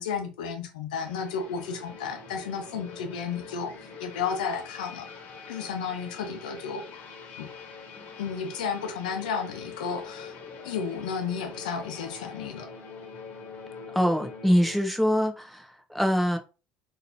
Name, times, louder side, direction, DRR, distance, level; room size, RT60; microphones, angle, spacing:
voice 1, 0.0-3.7 4.0-5.1 5.5-6.8 7.4-7.5 8.2-10.4 10.6-12.7, left 6 dB, 80° left, 0.8 m, -32 dB
sound 1, 0.9-14.8, left 5 dB, 50° left, 1.2 m, -44 dB
voice 2, 13.9-16.4, equal, ahead, 0.9 m, -24 dB
4.0 x 2.8 x 2.8 m
hypercardioid pair, 70°, 4 cm